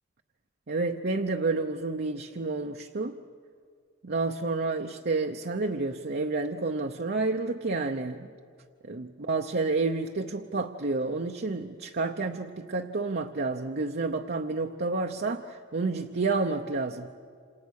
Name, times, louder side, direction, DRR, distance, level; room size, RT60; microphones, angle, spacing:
voice 1, 0.7-3.1 4.0-8.3 8.8-17.1, right 3 dB, 50° right, 3 dB, 0.8 m, -30 dB
27.5 x 27.5 x 6.5 m, 2.1 s
head